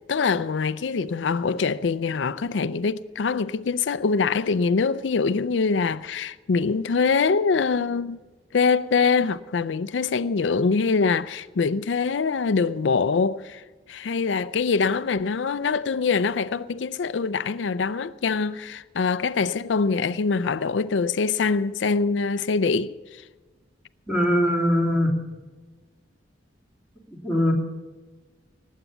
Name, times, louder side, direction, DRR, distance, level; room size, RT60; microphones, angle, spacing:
voice 1, 0.1-8.2 8.5-13.6 13.9-23.2, left 4 dB, 90° left, 0.5 m, -24 dB
voice 2, 24.1-25.1 27.1-27.5, equal, 5° right, 2.8 m, -21 dB
19.0 x 8.3 x 7.2 m
head